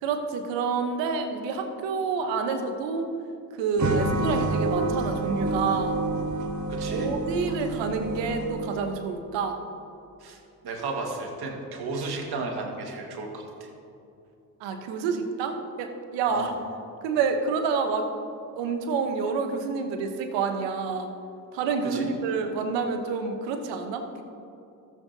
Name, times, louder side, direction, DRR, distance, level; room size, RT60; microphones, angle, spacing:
voice 1, 0.0-3.1 3.6-6.0 6.9-9.6 14.6-16.5 17.0-18.1 18.6-21.1 21.5-24.2, right 5 dB, 75° right, 6 dB, 1.0 m, -28 dB
sound 1, 3.8-8.9, right 2 dB, 40° right, 1.2 m, -28 dB
voice 2, 6.7-7.1 10.2-13.7 16.3-16.5 21.8-22.1, right 3 dB, 60° right, 1 dB, 1.9 m, -34 dB
14.5 x 7.5 x 2.8 m, 2.7 s
hypercardioid pair, 50°, 44 cm